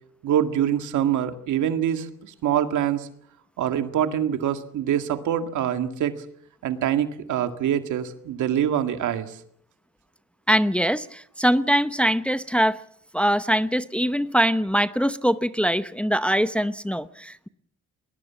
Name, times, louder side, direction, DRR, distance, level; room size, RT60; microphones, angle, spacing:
voice 1, 0.2-3.1 3.6-6.1 6.6-9.4, right 10 dB, 75° right, 2.0 m, -25 dB
voice 2, 10.5-12.8 13.1-17.5, equal, 5° left, 0.8 m, -22 dB
21.0 x 20.5 x 7.3 m
cardioid pair, 90°, 30 cm